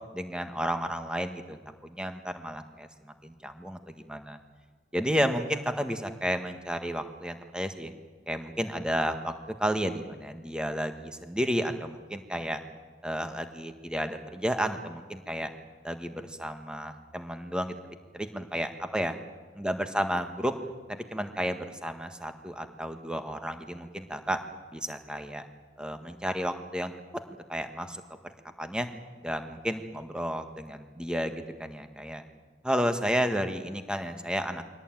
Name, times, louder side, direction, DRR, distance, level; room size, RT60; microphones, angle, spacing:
voice 1, 0.1-1.6 1.8-4.4 4.9-7.9 8.3-9.3 9.6-12.6 13.0-15.5 15.8-17.8 18.1-19.2 19.6-20.5 20.9-24.4 24.7-25.4 25.8-26.9 27.3-28.3 28.6-28.9 29.2-32.2 32.6-34.7, equal, 5° right, 7 dB, 1.6 m, -32 dB
24.5 x 18.0 x 9.2 m, 1.5 s
head